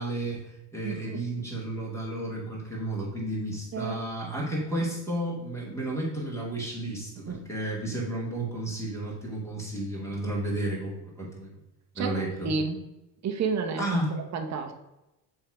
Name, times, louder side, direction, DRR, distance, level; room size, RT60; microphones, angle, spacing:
voice 1, 0.0-11.6 11.9-12.5 13.8-14.2, right 1 dB, 5° left, -4 dB, 2.3 m, -32 dB
voice 2, 0.8-1.2 3.7-4.0 7.2-7.4 12.0-12.8 13.2-13.8 14.3-14.7, right 5 dB, 35° right, 4 dB, 0.8 m, -30 dB
7.3 x 3.5 x 4.9 m, 0.95 s
cardioid pair, 125°, 46 cm